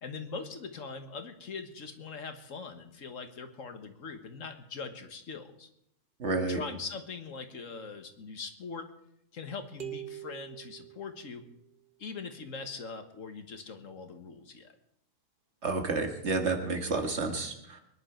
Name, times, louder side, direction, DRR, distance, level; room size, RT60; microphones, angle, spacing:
voice 1, 0.0-5.7 6.5-8.9 9.3-11.4 12.0-14.7, left 4 dB, 85° left, 7 dB, 1.8 m, -42 dB
voice 2, 6.2-6.6 15.6-17.8, right 3 dB, 60° right, 4 dB, 2.1 m, -30 dB
sound 1, 9.8-11.7, right 11 dB, 45° right, 1.5 m, -44 dB
23.5 x 10.5 x 4.5 m, 0.76 s
omnidirectional pair, 1.3 m